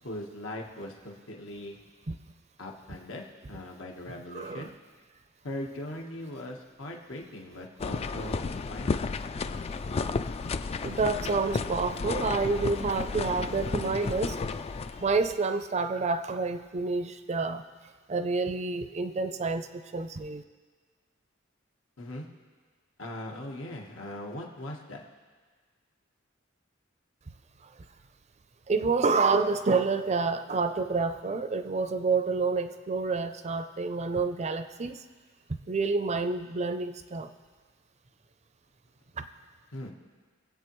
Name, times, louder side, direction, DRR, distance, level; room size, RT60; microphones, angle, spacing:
voice 1, 0.0-1.8 2.6-4.7 5.4-9.0 22.0-22.3 23.0-25.0 39.7-39.9, left 1 dB, 75° left, 0 dB, 1.3 m, -40 dB
voice 2, 4.3-4.7 10.8-14.3 15.0-17.6 18.1-19.7 19.9-20.4 28.7-35.0 35.7-37.3, right 4 dB, 35° right, 10 dB, 0.5 m, -28 dB
sound 1, 7.8-15.3, left 4 dB, 30° left, 0.3 m, -32 dB
23.5 x 8.2 x 3.1 m, 1.5 s
head